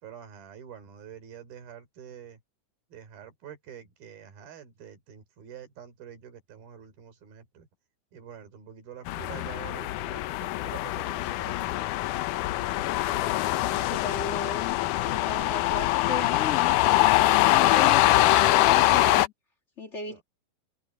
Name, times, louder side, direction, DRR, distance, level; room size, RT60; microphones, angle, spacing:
voice 1, 0.0-2.4 2.9-7.7 8.1-11.6 20.0-20.2, right 8 dB, 75° right, 5.4 m, -46 dB
sound 1, 9.1-19.3, left 16 dB, 75° left, 1.9 m, -23 dB
voice 2, 13.4-14.8 15.0-16.7 17.2-19.3 19.8-20.2, left 4 dB, 45° left, 0.8 m, -35 dB
omnidirectional pair, 4.3 m